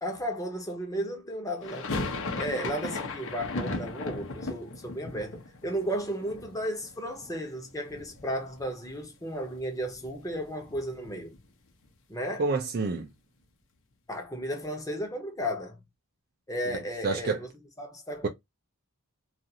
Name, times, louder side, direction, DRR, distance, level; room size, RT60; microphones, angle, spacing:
voice 1, 0.0-1.9 2.3-11.3 12.1-12.4 14.1-15.8 16.5-17.5 17.8-18.3, equal, 15° left, 0.8 m, -34 dB
sound 1, 1.6-7.6 7.8-8.7 8.9-9.0 9.3-11.5, left 3 dB, 60° left, 0.7 m, -37 dB
voice 2, 12.4-13.1 17.0-17.4, right 3 dB, 45° right, 0.5 m, -28 dB
2.5 x 2.5 x 2.7 m
head